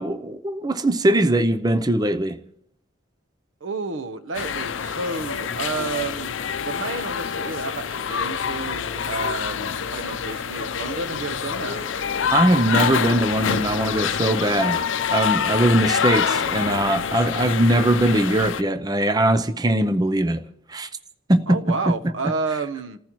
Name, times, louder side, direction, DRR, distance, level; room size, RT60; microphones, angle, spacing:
voice 1, 0.0-2.4 12.3-14.8 15.1-20.4 20.7-20.9 21.3-21.6, right 1 dB, 20° right, 0.6 m, -21 dB
voice 2, 3.6-6.4 6.6-11.8 21.5-23.0, right 3 dB, 85° right, 1.0 m, -30 dB
sound 1, 4.3-18.6, left 7 dB, 80° left, 0.6 m, -26 dB
29.0 x 14.5 x 3.1 m
head